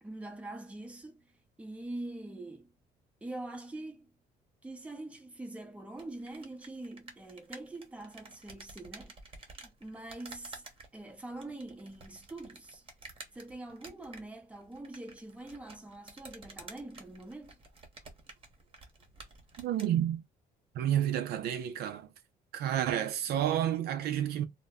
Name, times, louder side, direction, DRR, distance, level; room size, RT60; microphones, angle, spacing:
voice 1, 0.0-1.2 1.6-2.7 3.2-4.1 4.6-9.2 9.6-10.6 10.9-12.8 13.3-17.6, right 2 dB, 5° right, 0.6 m, -44 dB
sound 1, 5.9-19.9, right 3 dB, 30° right, 0.9 m, -52 dB
voice 2, 19.6-20.2 20.7-22.1 22.5-24.4, right 11 dB, 70° right, 0.4 m, -30 dB
2.1 x 2.0 x 3.5 m
cardioid pair, 110°, 17 cm